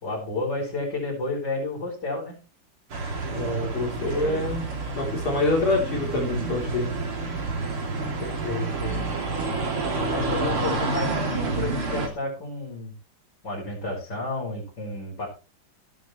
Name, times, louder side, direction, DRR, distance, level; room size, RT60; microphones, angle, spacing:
voice 1, 0.0-2.4 3.7-4.5 7.9-9.1 10.1-12.9 13.4-15.3, left 2 dB, 50° left, -6 dB, 6.3 m, -31 dB
sound 1, 2.9-12.1, right 3 dB, 75° right, 3.9 m, -29 dB
voice 2, 3.3-4.7 5.0-6.9, left 2 dB, 75° left, -1 dB, 4.5 m, -26 dB
17.5 x 10.5 x 3.2 m, 0.31 s
omnidirectional pair, 2.4 m